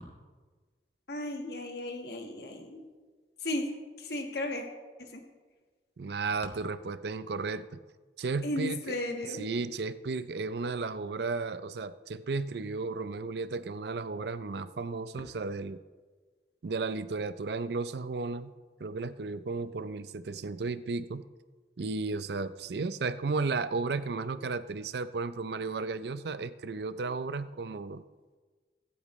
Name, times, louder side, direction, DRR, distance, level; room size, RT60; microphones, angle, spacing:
voice 1, 1.1-2.8 3.4-4.6 5.1-5.2 8.4-9.5, left 1 dB, 65° left, 3 dB, 1.5 m, -35 dB
voice 2, 6.0-7.8 8.2-9.0 9.2-15.8 16.6-18.5 18.8-21.2 21.8-28.0, right 4 dB, 65° right, 14 dB, 0.5 m, -34 dB
23.5 x 8.7 x 3.1 m, 1.4 s
head